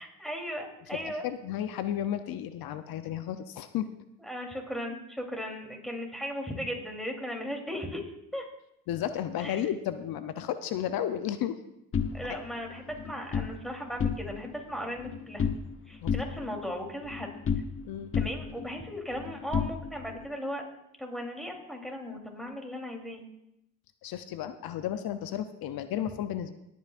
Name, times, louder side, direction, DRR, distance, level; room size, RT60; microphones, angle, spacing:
voice 1, 0.0-1.2 4.2-8.4 9.4-9.7 12.1-15.5 15.9-17.3 18.1-20.6 21.0-23.2, equal, ahead, 1 dB, 3.3 m, -37 dB
voice 2, 0.9-3.9 8.9-11.6 12.3-12.4 16.0-16.1 17.8-18.1 24.0-26.5, left 10 dB, 70° left, 10 dB, 0.7 m, -33 dB
sound 1, 11.9-13.5 13.9-14.6 14.8-15.8 16.1-17.9 18.1-20.2, left 6 dB, 35° left, 1.0 m, -32 dB
18.5 x 9.3 x 2.5 m, 0.83 s
supercardioid pair, 60°, 37 cm